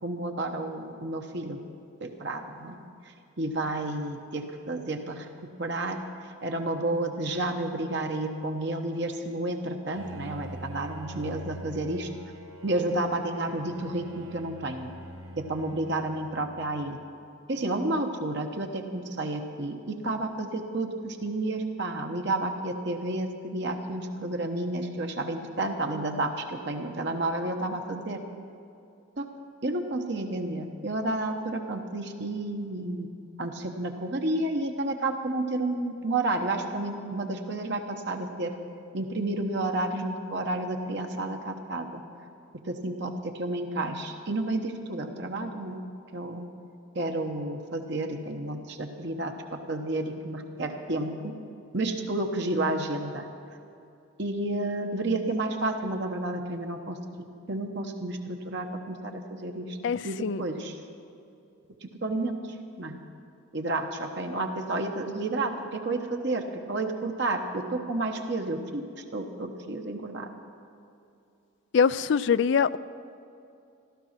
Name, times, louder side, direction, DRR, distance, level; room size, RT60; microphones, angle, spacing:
voice 1, 0.0-1.6 2.0-2.8 3.0-5.3 5.6-12.1 12.6-14.9 15.4-17.0 17.5-28.2 29.2-29.3 29.6-33.1 33.4-38.5 38.9-42.0 42.6-45.8 46.1-46.5 46.9-51.3 51.7-53.3 54.2-59.8 60.0-60.8 61.8-62.4 62.8-63.0 63.5-70.3, right 2 dB, 55° right, 3 dB, 1.0 m, -31 dB
Bowed string instrument, 9.9-17.0, right 2 dB, 80° right, 1.2 m, -44 dB
voice 2, 59.8-60.4 71.7-72.8, left 6 dB, 60° left, 18 dB, 0.3 m, -23 dB
15.0 x 13.0 x 5.8 m, 2.6 s
head